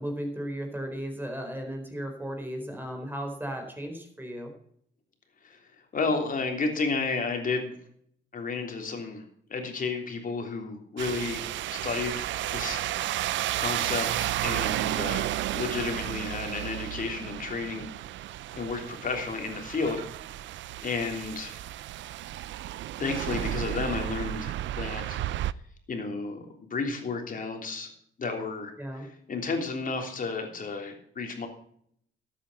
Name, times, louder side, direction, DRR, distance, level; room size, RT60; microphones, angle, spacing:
voice 1, 0.0-4.5 28.8-29.0, equal, 10° right, 3 dB, 4.4 m, -35 dB
voice 2, 5.9-7.7 8.3-9.2 9.5-11.4 11.7-12.8 13.1-17.9 18.5-20.0 20.8-21.5 23.0-25.2 25.9-27.9 28.2-31.5, left 4 dB, 45° left, 3 dB, 3.4 m, -32 dB
sound 1, 11.0-25.5, right 13 dB, 70° right, 0.5 m, -32 dB
12.5 x 8.9 x 5.6 m, 0.65 s
cardioid pair, 90°, 20 cm